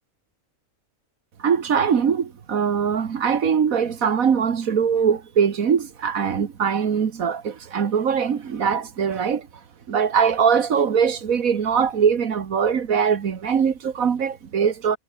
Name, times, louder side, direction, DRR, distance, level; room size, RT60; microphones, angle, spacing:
voice 1, 1.4-9.5 9.9-15.0, right 7 dB, 80° right, 1.8 m, -21 dB
omnidirectional pair, 1.4 m